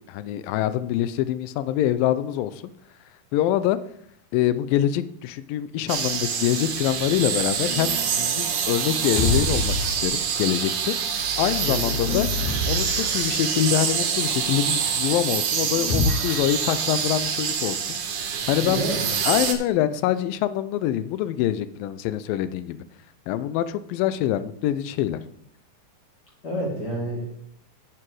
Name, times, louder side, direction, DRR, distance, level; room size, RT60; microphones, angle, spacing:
voice 1, 0.1-2.6 3.3-3.8 4.3-11.0 11.4-12.3 12.7-17.9 18.5-18.8 19.2-22.8 23.3-25.2, left 12 dB, 85° left, 14 dB, 2.3 m, -25 dB
sound 1, 5.9-19.5, right 7 dB, 65° right, 2.1 m, -26 dB
sound 2, 7.7-8.1 8.9-10.3 11.0-13.3 15.7-16.7, left 3 dB, 55° left, 3.7 m, -28 dB
voice 2, 11.6-12.2 18.6-19.0 26.4-27.3, right 1 dB, 30° left, -2 dB, 2.9 m, -29 dB
9.7 x 7.7 x 4.7 m, 0.69 s
omnidirectional pair, 4.1 m